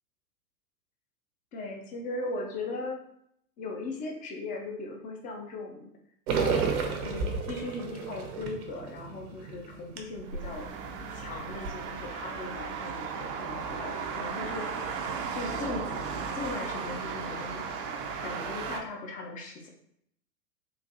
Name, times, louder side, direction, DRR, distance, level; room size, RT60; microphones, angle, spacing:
voice 1, 1.5-3.0 3.6-5.9 6.4-6.7 7.0-10.7 11.1-15.0 15.3-17.6 18.2-19.7, left 2 dB, 20° left, 1 dB, 0.4 m, -38 dB
sound 1, 6.3-10.5 11.0-11.1 11.5-11.7, right 5 dB, 65° right, 0.8 m, -31 dB
sound 2, 10.2-18.8, right 5 dB, 35° right, 0.5 m, -35 dB
3.8 x 2.5 x 2.8 m, 0.72 s
figure-of-eight pair, 100°, 47 cm